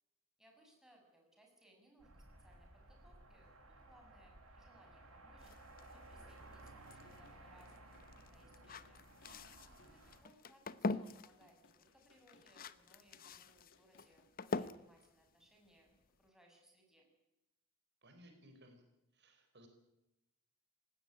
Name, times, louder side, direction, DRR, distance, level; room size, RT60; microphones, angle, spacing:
voice 1, 0.4-5.5 5.9-9.0 9.8-17.0, right 1 dB, 5° right, 0 dB, 6.4 m, -68 dB
sound 1, 2.0-10.2, right 2 dB, 85° right, 7.3 m, -58 dB
sound 2, 5.4-16.3, left 3 dB, 45° left, 0.9 m, -46 dB
sound 3, 7.0-14.3, left 3 dB, 60° left, 2.3 m, -70 dB
voice 2, 9.2-9.9 18.0-18.8 19.1-19.7, right 1 dB, 55° right, 5 dB, 4.5 m, -61 dB
19.0 x 17.0 x 10.0 m, 0.91 s
head